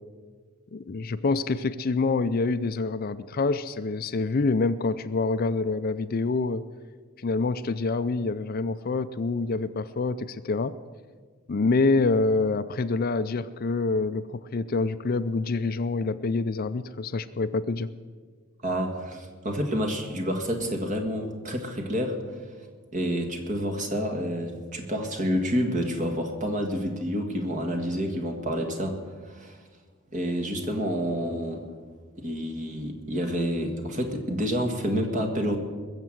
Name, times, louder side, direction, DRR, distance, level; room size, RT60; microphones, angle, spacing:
voice 1, 0.7-6.6 7.2-10.7 11.5-17.9, left 3 dB, 45° left, 13 dB, 0.4 m, -26 dB
voice 2, 18.6-22.2 22.9-29.0 29.2-29.6 30.1-31.6 32.2-35.6, equal, 35° right, 4 dB, 1.7 m, -28 dB
21.0 x 7.4 x 7.7 m, 1.5 s
head